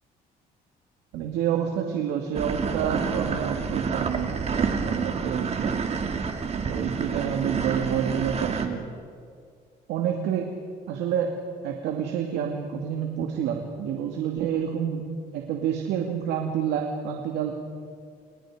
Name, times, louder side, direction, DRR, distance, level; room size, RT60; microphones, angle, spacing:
voice 1, 1.1-5.8 6.7-8.9 9.9-10.5 10.9-11.3 11.6-15.0 15.3-17.5, right 8 dB, 85° right, 2 dB, 2.6 m, -28 dB
sound 1, 2.3-8.7, right 5 dB, 40° right, 2.9 m, -28 dB
30.0 x 30.0 x 5.1 m, 2.2 s
cardioid pair, 110°, 17 cm